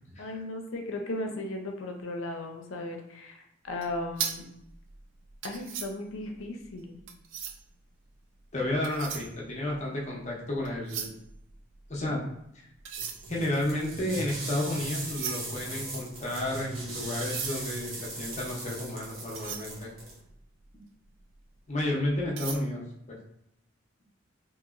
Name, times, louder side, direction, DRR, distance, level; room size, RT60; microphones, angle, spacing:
voice 1, 0.2-4.4 5.4-7.0, left 2 dB, 80° left, 3 dB, 0.5 m, -36 dB
sound 1, 3.7-7.8 8.6-10.3 10.6-12.3 12.7-20.7 21.2-21.4 21.8-22.6, right 7 dB, 70° right, 0.4 m, -39 dB
voice 2, 8.5-11.2 11.9-12.2 13.3-19.9 21.7-22.8 23.1-23.2, left 1 dB, 35° left, -3 dB, 0.6 m, -31 dB
sound 2, 13.0-20.2, right 2 dB, 85° right, 1.0 m, -39 dB
2.9 x 2.8 x 2.4 m, 0.79 s
head